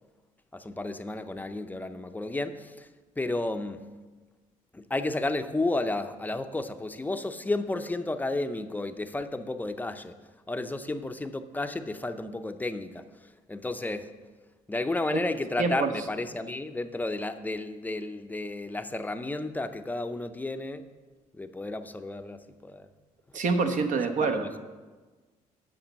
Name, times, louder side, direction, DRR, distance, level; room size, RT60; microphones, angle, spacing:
voice 1, 0.5-2.9 3.2-3.8 4.7-10.1 10.5-14.1 14.7-20.8 21.3-22.9 24.2-24.5, left 2 dB, 10° left, 8 dB, 0.6 m, -32 dB
voice 2, 15.6-15.9 23.3-24.6, right 4 dB, 60° right, 6 dB, 1.1 m, -26 dB
8.8 x 6.0 x 7.4 m, 1.3 s
cardioid pair, 105°, 14 cm